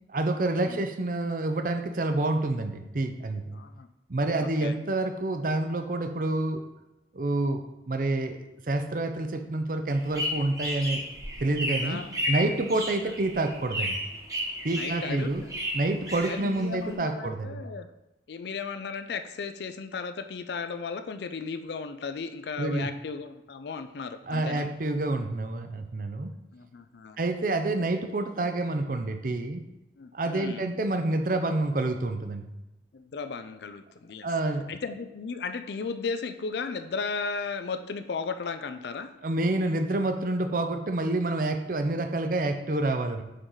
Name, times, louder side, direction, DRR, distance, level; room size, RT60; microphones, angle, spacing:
voice 1, 0.1-3.5 4.1-6.6 7.1-7.6 7.9-8.4 8.7-11.0 11.4-12.0 12.3-14.0 14.6-15.4 15.7-17.6 22.6-22.9 24.3-26.3 27.2-29.6 30.1-32.5 34.2-34.6 39.2-43.2, right 2 dB, 50° right, 7 dB, 0.5 m, -28 dB
voice 2, 3.5-3.9 4.4-4.8 11.8-12.7 13.1-13.2 14.7-15.5 16.3-17.9 18.3-24.7 26.5-27.2 30.0-30.7 32.9-34.3 34.7-39.1, left 5 dB, 70° left, 10 dB, 0.4 m, -35 dB
sound 1, 9.9-16.9, equal, 20° right, 1.2 m, -33 dB
6.4 x 4.6 x 3.9 m, 0.94 s
head